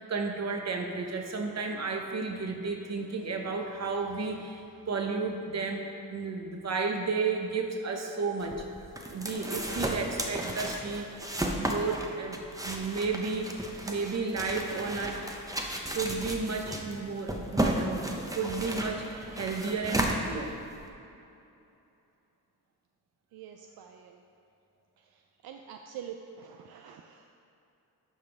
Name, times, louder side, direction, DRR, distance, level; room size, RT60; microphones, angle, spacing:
voice 1, 0.0-5.8 6.1-8.7 9.1-11.1 11.5-13.5 13.9-15.2 15.9-20.5, right 4 dB, 45° right, 3 dB, 1.0 m, -32 dB
sound 1, 8.4-20.9, right 1 dB, 10° right, 0.8 m, -34 dB
voice 2, 23.3-24.1 25.4-27.4, right 8 dB, 70° right, 4 dB, 0.5 m, -45 dB
11.5 x 5.2 x 3.5 m, 2.8 s
cardioid pair, 75°, 38 cm